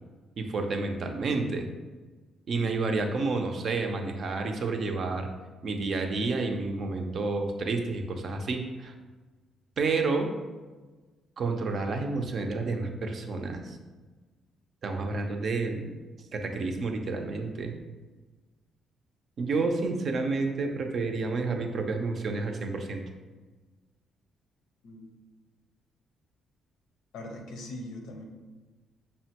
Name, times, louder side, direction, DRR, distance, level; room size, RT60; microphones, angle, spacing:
voice 1, 0.4-1.7 2.5-5.3 5.6-8.9 9.8-10.3 11.4-13.8 14.8-15.9 16.3-17.7 19.4-23.0, right 3 dB, 55° right, 4 dB, 0.5 m, -30 dB
voice 2, 27.1-28.2, left 1 dB, 85° left, 2 dB, 0.6 m, -41 dB
5.4 x 2.1 x 2.8 m, 1.3 s
cardioid pair, 90°, 0 cm